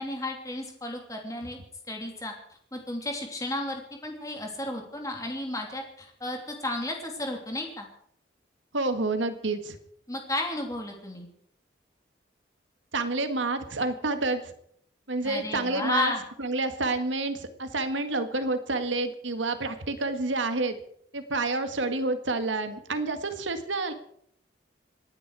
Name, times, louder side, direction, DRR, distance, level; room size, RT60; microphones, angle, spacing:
voice 1, 0.0-1.6 1.9-2.3 2.7-7.9 10.1-11.3 15.2-16.2, left 2 dB, 20° left, 2 dB, 2.9 m, -33 dB
voice 2, 8.7-9.8 12.9-14.5 15.1-16.1 16.4-20.8 21.1-23.9, right 3 dB, 90° right, 8 dB, 1.8 m, -29 dB
27.0 x 9.7 x 4.8 m, 0.67 s
head